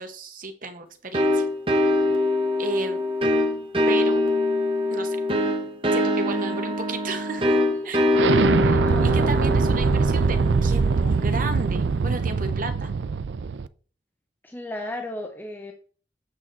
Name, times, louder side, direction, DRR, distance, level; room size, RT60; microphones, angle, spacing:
voice 1, 0.0-1.5 1.8-1.9 2.6-3.0 3.9-4.2 4.9-5.2 5.9-7.6 7.8-8.0 8.6-12.9, right 2 dB, 50° right, 6 dB, 1.3 m, -33 dB
sound 1, 1.1-11.6, left 1 dB, 30° right, 1.2 m, -24 dB
Explosion, 8.1-13.7, right 5 dB, 80° right, 0.4 m, -22 dB
voice 2, 8.2-9.3 14.4-15.7, left 1 dB, 10° left, 3 dB, 0.8 m, -36 dB
8.4 x 5.9 x 4.1 m, 0.42 s
head